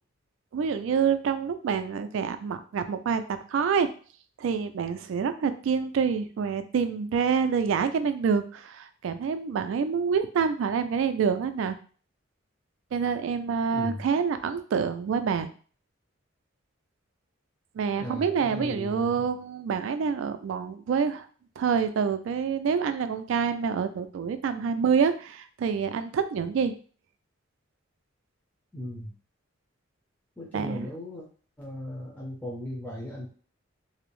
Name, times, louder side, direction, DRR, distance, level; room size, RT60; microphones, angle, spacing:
voice 1, 0.5-3.9 4.4-11.8 12.9-15.5 17.7-21.3 21.6-26.7 30.5-30.9, right 6 dB, 70° right, 10 dB, 0.3 m, -27 dB
voice 2, 13.7-14.1 18.0-19.2 28.7-29.1 30.4-31.2 31.6-33.3, left 1 dB, 10° left, -6 dB, 0.5 m, -37 dB
2.6 x 2.0 x 3.0 m, 0.41 s
head